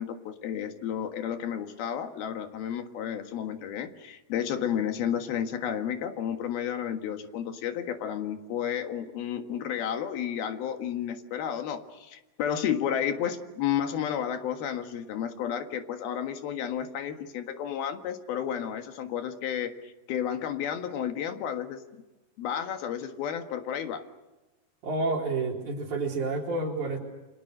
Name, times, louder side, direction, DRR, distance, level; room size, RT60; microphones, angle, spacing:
voice 1, 0.0-22.0 22.4-24.0, left 9 dB, 85° left, 7 dB, 3.5 m, -32 dB
voice 2, 24.8-27.0, right 3 dB, 55° right, 0 dB, 5.3 m, -29 dB
29.0 x 26.5 x 6.5 m, 1.1 s
omnidirectional pair, 4.2 m